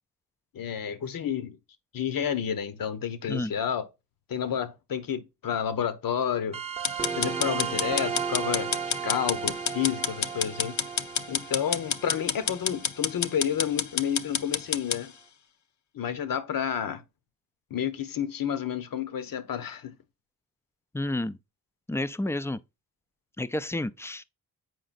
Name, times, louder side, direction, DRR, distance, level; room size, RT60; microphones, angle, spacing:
voice 1, 0.5-1.6 1.9-3.8 4.3-6.6 7.1-8.7 9.0-10.8 11.3-15.1 15.9-17.0 17.7-19.9, left 8 dB, 70° left, 1.0 m, -30 dB
sound 1, 6.5-13.6, right 6 dB, 20° right, 0.7 m, -35 dB
sound 2, 6.8-15.0, left 7 dB, 55° left, 0.6 m, -29 dB
voice 2, 20.9-21.4 21.9-22.6 23.4-24.2, left 1 dB, 10° left, 0.3 m, -30 dB
7.6 x 4.9 x 2.5 m
cardioid pair, 90°, 35 cm